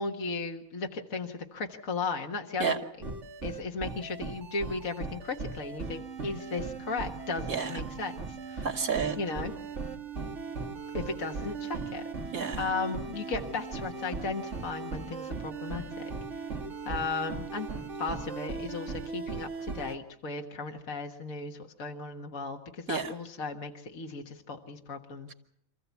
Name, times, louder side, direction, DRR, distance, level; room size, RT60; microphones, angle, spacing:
voice 1, 0.0-2.7 3.0-3.1 3.4-8.2 8.5-8.7 9.2-9.5 10.9-12.0 12.6-16.1 16.9-17.7 18.0-25.3, left 3 dB, 70° left, 3 dB, 1.9 m, -36 dB
sound 1, 3.0-20.0, right 4 dB, 55° right, 2.2 m, -38 dB
voice 2, 8.6-9.2 12.3-12.6 22.9-23.1, right 6 dB, 80° right, 5 dB, 2.5 m, -30 dB
27.0 x 15.0 x 8.3 m, 0.75 s
omnidirectional pair, 1.5 m